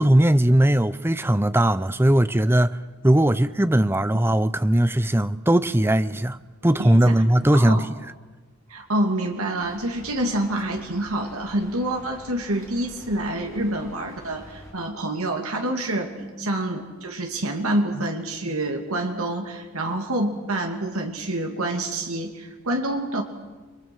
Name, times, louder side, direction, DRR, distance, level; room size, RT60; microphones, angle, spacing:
voice 1, 0.0-2.8 3.0-6.4 6.6-8.0 16.2-16.6, right 1 dB, 10° right, 0.6 m, -19 dB
voice 2, 6.8-7.1 7.5-7.9 8.7-23.2, right 1 dB, 85° right, 2.5 m, -27 dB
Rain, 9.6-14.7, left 1 dB, 15° left, 6.8 m, -46 dB
30.0 x 22.5 x 6.3 m
head